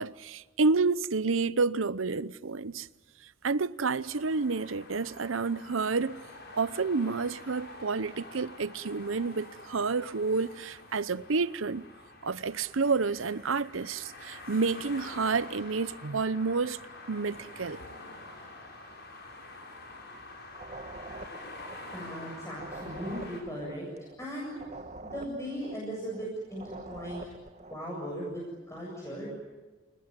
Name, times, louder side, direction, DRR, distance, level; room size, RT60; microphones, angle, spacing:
voice 1, 0.0-2.9 3.4-6.2 6.5-11.9 12.2-16.8 17.1-17.8, right 4 dB, 85° right, 0.8 m, -29 dB
sound 1, 4.0-23.4, left 2 dB, 55° left, 6.6 m, -47 dB
sound 2, 20.5-27.9, right 2 dB, 35° right, 2.0 m, -45 dB
voice 2, 21.9-23.9 24.2-24.6 25.0-27.2 27.7-29.3, equal, 15° left, 7.7 m, -38 dB
29.0 x 21.0 x 9.8 m
head